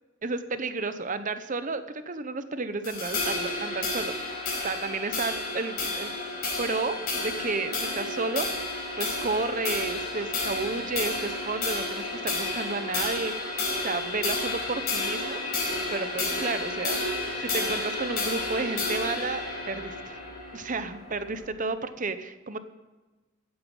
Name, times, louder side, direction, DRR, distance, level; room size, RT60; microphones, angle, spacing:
voice 1, 0.2-4.3 4.6-6.1 6.6-15.4 15.9-20.2 20.5-22.6, right 3 dB, 40° right, 11 dB, 0.8 m, -32 dB
sound 1, 2.8-21.4, left 2 dB, 50° left, 5.3 m, -31 dB
14.5 x 9.7 x 5.5 m, 1.2 s
head